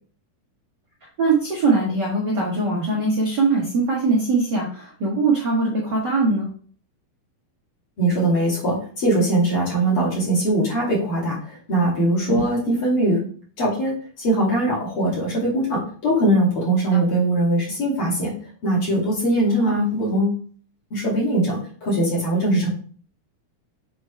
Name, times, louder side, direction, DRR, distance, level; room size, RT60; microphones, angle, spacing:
voice 1, 1.2-6.5 12.3-12.4 19.6-19.7, right 3 dB, 65° right, -3 dB, 1.0 m, -21 dB
voice 2, 8.0-13.2 13.6-18.3 18.6-20.4 20.9-22.7, right 1 dB, 40° left, -5 dB, 3.0 m, -21 dB
7.5 x 4.6 x 3.3 m, 0.44 s
omnidirectional pair, 4.4 m